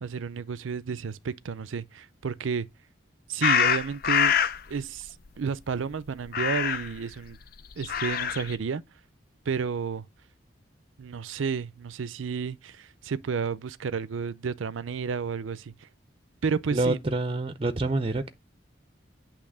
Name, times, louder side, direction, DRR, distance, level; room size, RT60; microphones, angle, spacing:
voice 1, 0.0-2.7 3.3-4.4 4.7-7.4 7.8-8.8 9.5-10.0 11.0-15.7 16.4-17.0, right 6 dB, 90° right, 0.5 m, -31 dB
sound 1, 3.4-4.6 6.3-7.0 7.7-8.6, left 8 dB, 50° left, 0.4 m, -24 dB
voice 2, 16.7-18.3, right 2 dB, 30° right, 0.5 m, -27 dB
8.6 x 3.0 x 6.1 m
head